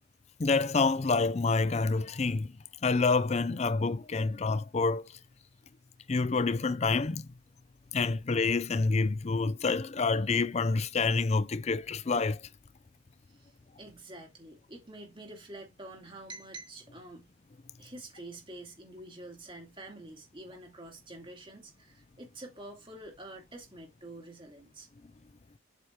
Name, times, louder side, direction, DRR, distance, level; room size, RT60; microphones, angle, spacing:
voice 1, 0.4-2.5 2.8-5.0 6.1-7.2 7.9-12.4, left 4 dB, 30° left, 0.4 m, -27 dB
voice 2, 13.3-17.3 17.8-24.9, right 1 dB, 25° right, 2.7 m, -47 dB
8.1 x 4.3 x 4.6 m
head